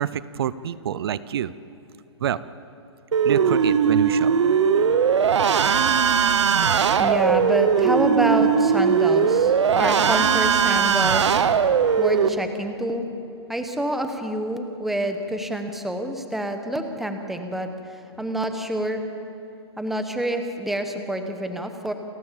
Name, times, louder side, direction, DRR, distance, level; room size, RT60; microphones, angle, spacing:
voice 1, 0.0-1.5 2.2-2.4 3.2-4.3, right 10 dB, 60° right, 17 dB, 0.6 m, -27 dB
sound 1, 3.1-12.3, right 7 dB, 90° right, 1.1 m, -19 dB
voice 2, 7.0-11.4 12.0-13.1 13.5-17.7 18.2-19.0 19.8-21.9, right 1 dB, ahead, 6 dB, 1.1 m, -27 dB
29.0 x 14.0 x 7.5 m, 2.8 s
hypercardioid pair, 160°, 15 cm